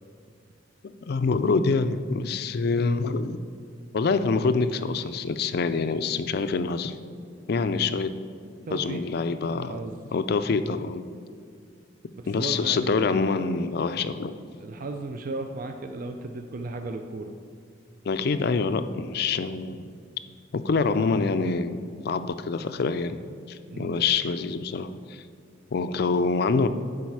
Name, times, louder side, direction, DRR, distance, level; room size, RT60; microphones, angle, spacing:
voice 1, 0.8-3.4 3.9-7.0 7.5-8.1 8.7-9.8 10.1-11.0 12.3-14.4 18.0-19.9 20.5-23.2 23.5-25.2 25.7-26.7, left 4 dB, 55° left, 11 dB, 0.4 m, -26 dB
voice 2, 8.7-9.1 9.7-10.1 12.1-13.2 14.6-17.4 23.7-24.0, right 2 dB, 50° right, 5 dB, 0.4 m, -35 dB
11.5 x 4.9 x 4.7 m, 2.4 s
head